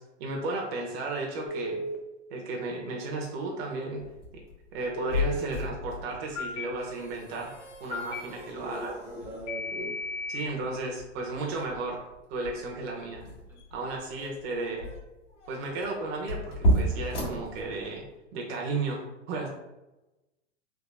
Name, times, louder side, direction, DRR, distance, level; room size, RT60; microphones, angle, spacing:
voice 1, 0.2-1.8 2.3-4.1 4.7-8.9 10.3-12.0 12.3-13.3 13.7-14.9 15.5-18.0 18.3-19.5, right 3 dB, 55° right, -1 dB, 0.8 m, -34 dB
Telephone, 1.5-2.0 5.0-5.5 6.4-6.7 7.9-8.2 9.5-10.5, left 1 dB, 50° left, 0.6 m, -34 dB
sound 1, 4.0-18.1, equal, 70° left, 1.4 m, -34 dB
voice 2, 8.5-10.0 16.9-17.0, right 1 dB, 5° right, -4 dB, 0.7 m, -39 dB
3.4 x 2.8 x 2.3 m, 1.0 s
hypercardioid pair, 115°, 37 cm